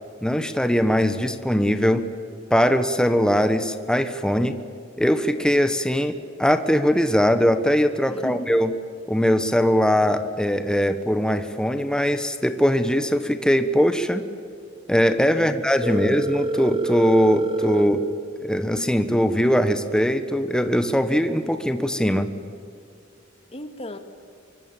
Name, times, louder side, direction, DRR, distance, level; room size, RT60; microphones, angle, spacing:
voice 1, 0.2-2.1 2.5-4.6 5.0-8.7 9.1-14.3 14.9-18.0 18.4-22.3, equal, 5° left, 9 dB, 1.1 m, -21 dB
voice 2, 8.1-8.6 15.3-16.2 23.5-24.0, left 1 dB, 30° left, 8 dB, 2.0 m, -36 dB
Telephone, 15.8-17.8, right 2 dB, 25° right, 2.5 m, -26 dB
24.5 x 24.0 x 9.0 m, 2.4 s
head